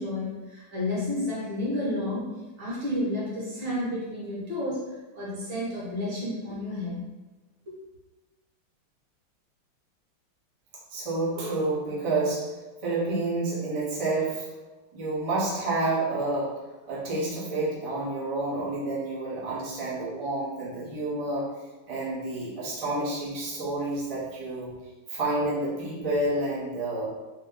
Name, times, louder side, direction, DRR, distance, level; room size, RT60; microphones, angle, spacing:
voice 1, 0.0-2.3 2.6-4.8 5.2-7.0, left 1 dB, 60° right, -7 dB, 2.1 m, -31 dB
voice 2, 10.9-12.5 12.8-14.5 14.9-21.5 21.9-24.7 25.1-27.1, right 2 dB, 40° right, -9 dB, 0.4 m, -29 dB
4.2 x 2.2 x 3.7 m, 1.2 s
omnidirectional pair, 2.4 m